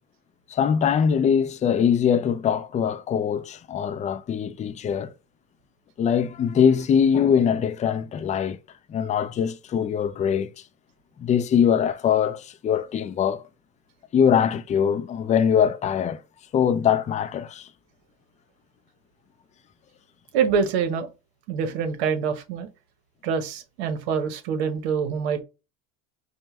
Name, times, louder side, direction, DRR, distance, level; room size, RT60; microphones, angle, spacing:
voice 1, 0.5-5.1 6.0-8.6 8.9-10.5 11.2-13.4 14.1-16.2 16.5-17.7, left 8 dB, 25° left, 0.4 m, -22 dB
voice 2, 20.3-21.1 21.5-22.7 23.2-25.4, right 6 dB, 80° right, 1.0 m, -25 dB
5.3 x 2.2 x 3.0 m
supercardioid pair, 105°, 32 cm